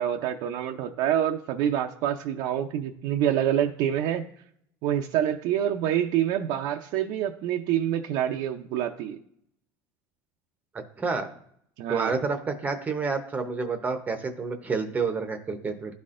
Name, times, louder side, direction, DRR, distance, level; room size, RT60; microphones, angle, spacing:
voice 1, 0.0-4.2 4.8-9.2 11.8-12.2, right 10 dB, 65° right, 2 dB, 0.5 m, -26 dB
voice 2, 11.0-11.3 11.9-15.9, right 4 dB, 20° right, 6 dB, 0.7 m, -29 dB
12.5 x 4.1 x 2.5 m, 0.67 s
cardioid pair, 135°, 8 cm